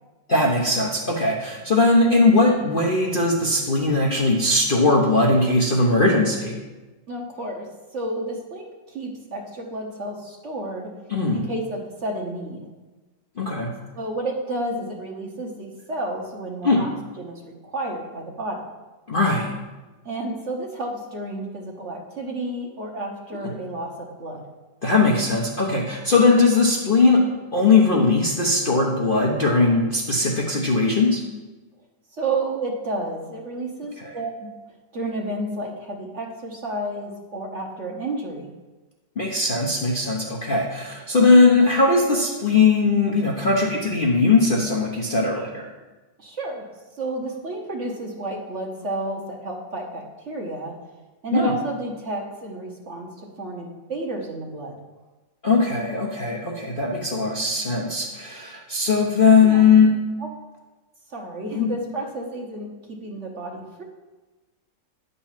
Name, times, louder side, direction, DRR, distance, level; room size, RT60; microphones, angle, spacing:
voice 1, 0.3-6.6 11.1-11.4 13.4-13.7 16.6-16.8 19.1-19.5 24.8-27.2 27.5-31.2 34.0-34.1 39.2-45.7 51.3-51.5 55.4-59.9 61.5-61.7, left 3 dB, 40° left, -3 dB, 0.8 m, -19 dB
voice 2, 7.1-10.9 11.3-12.7 13.9-18.6 20.0-24.4 32.1-34.5 34.9-38.5 46.2-46.7 46.9-50.7 51.2-54.8 59.4-59.9 60.2-60.3 61.1-63.8, right 2 dB, 45° right, 1 dB, 1.1 m, -31 dB
10.0 x 4.2 x 7.3 m, 1.2 s
omnidirectional pair, 2.0 m